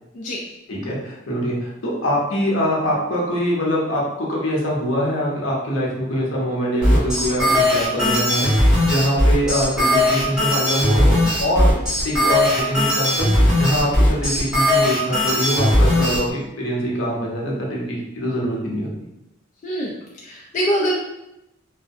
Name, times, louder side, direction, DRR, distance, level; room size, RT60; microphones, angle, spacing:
voice 1, 0.7-11.7 12.0-13.3 13.6-18.9, equal, 75° left, -3 dB, 0.7 m, -23 dB
sound 1, 6.8-16.2, left 1 dB, 5° right, 0.8 m, -18 dB
voice 2, 20.2-21.0, equal, 40° left, -4 dB, 0.3 m, -23 dB
2.3 x 2.1 x 2.6 m, 0.88 s
head